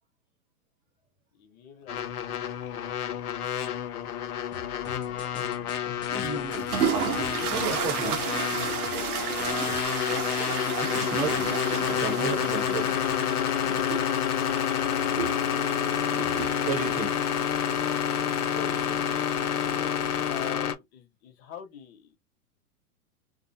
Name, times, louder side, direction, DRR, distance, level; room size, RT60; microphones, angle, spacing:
voice 1, 1.3-2.4 18.4-19.1 19.6-22.2, left 8 dB, 45° left, 0.9 m, -43 dB
sound 1, 1.9-20.8, left 9 dB, 85° left, 0.6 m, -29 dB
sound 2, 4.5-9.8, left 5 dB, 10° left, 0.4 m, -45 dB
voice 2, 6.1-6.6 7.4-8.2 10.6-11.4 11.9-12.9 16.3-17.1, right 4 dB, 20° right, 0.8 m, -33 dB
sound 3, 6.5-20.5, right 7 dB, 80° right, 0.8 m, -34 dB
2.5 x 2.1 x 2.6 m
hypercardioid pair, 115°, 44 cm